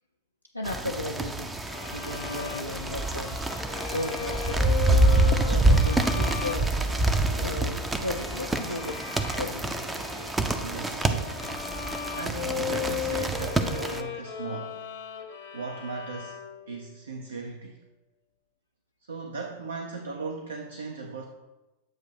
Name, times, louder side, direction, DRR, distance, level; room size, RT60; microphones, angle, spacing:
voice 1, 0.5-1.6 1.9-3.4 3.9-5.0 5.3-6.7 7.3-9.0 9.4-9.8, left 2 dB, 85° left, -1 dB, 0.4 m, -35 dB
sound 1, 0.6-14.0, right 2 dB, 10° right, 0.4 m, -26 dB
Violin - A major, 1.7-16.8, left 8 dB, 55° left, 0.8 m, -37 dB
voice 2, 10.6-11.4 12.2-14.8 15.5-16.4 16.7-17.8 19.1-21.2, right 4 dB, 70° right, 3 dB, 0.5 m, -37 dB
7.6 x 2.6 x 5.6 m, 1.1 s
figure-of-eight pair, 90°, 0 cm